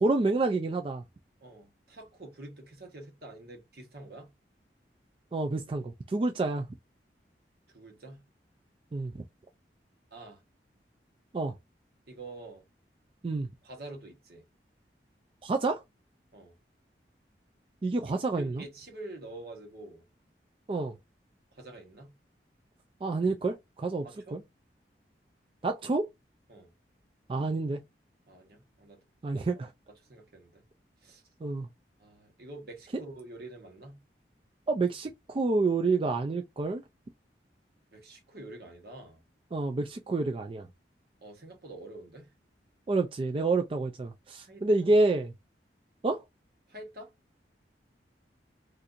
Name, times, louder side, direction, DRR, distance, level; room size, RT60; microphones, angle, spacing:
voice 1, 0.0-1.0 5.3-6.7 8.9-9.1 11.3-11.5 13.2-13.5 15.4-15.8 17.8-18.6 20.7-20.9 23.0-24.4 25.6-26.1 27.3-27.8 29.2-29.7 31.4-31.7 34.7-36.8 39.5-40.7 42.9-45.3 46.0-46.2, right 3 dB, 30° right, 0.3 m, -28 dB
voice 2, 1.4-4.3 7.7-8.2 10.1-10.4 12.1-12.6 13.6-14.4 16.3-16.6 18.1-20.0 21.5-22.1 24.0-24.4 26.5-26.7 28.3-29.0 29.3-29.5 30.0-30.6 31.0-31.2 32.0-34.0 37.9-39.2 41.2-42.3 44.4-44.7 46.7-47.1, right 2 dB, 60° right, 1.2 m, -47 dB
4.2 x 2.5 x 2.5 m
head